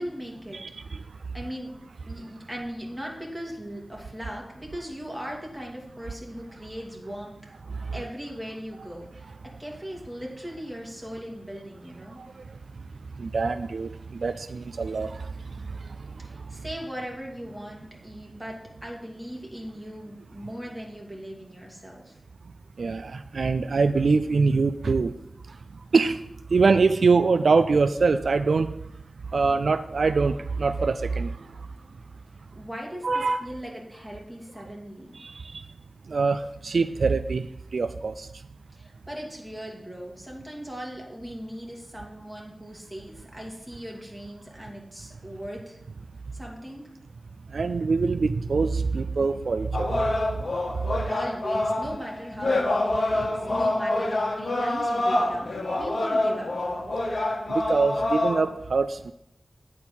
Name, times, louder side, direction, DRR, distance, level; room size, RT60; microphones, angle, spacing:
voice 1, 0.0-1.7 2.0-7.4 7.9-12.2 16.2-22.2 32.5-35.2 38.7-45.8 46.3-46.8 51.1-56.7, equal, 10° right, -2 dB, 2.6 m, -39 dB
voice 2, 0.5-1.0 7.9-8.0 12.2-12.3 13.2-15.2 22.8-25.1 25.9-26.2 26.5-28.7 29.3-31.3 33.0-33.5 35.2-35.6 36.1-37.5 37.7-38.3 47.5-50.0 57.7-59.1, right 4 dB, 85° right, 11 dB, 0.3 m, -24 dB
sound 1, 49.7-58.4, left 2 dB, 75° left, 1.4 m, -26 dB
9.5 x 4.5 x 5.5 m, 0.80 s
wide cardioid pair, 55°, 0 cm